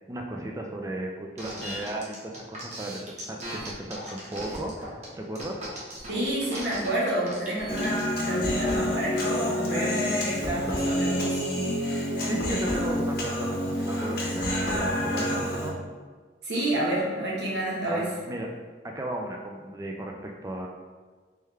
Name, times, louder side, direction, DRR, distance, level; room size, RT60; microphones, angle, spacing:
voice 1, 0.1-5.6 12.2-15.8 17.9-18.5 18.8-20.7, right 1 dB, 15° right, 1 dB, 0.3 m, -35 dB
sound 1, 1.4-8.1, right 1 dB, 40° right, 0.9 m, -38 dB
voice 2, 6.1-11.4 16.4-18.0, right 1 dB, 65° right, -6 dB, 1.1 m, -29 dB
Human voice, 7.7-15.7, left 1 dB, 55° left, 0.9 m, -28 dB
3.4 x 3.3 x 3.2 m, 1.5 s
head